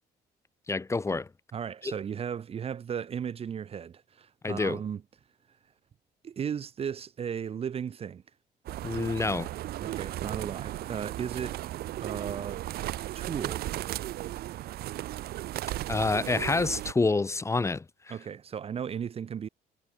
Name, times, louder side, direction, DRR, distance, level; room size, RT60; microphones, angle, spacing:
voice 1, 0.7-1.3 1.8-1.9 4.4-4.8 8.8-9.5 15.9-18.1, left 3 dB, 15° left, 0.8 m, -28 dB
voice 2, 1.5-5.0 6.2-8.2 9.8-11.6 12.0-12.6 13.2-13.7 18.1-19.5, right 8 dB, 35° right, 0.7 m, -35 dB
sound 1, 8.7-16.9, right 15 dB, 65° right, 0.8 m, -36 dB
cardioid pair, 110°, 17 cm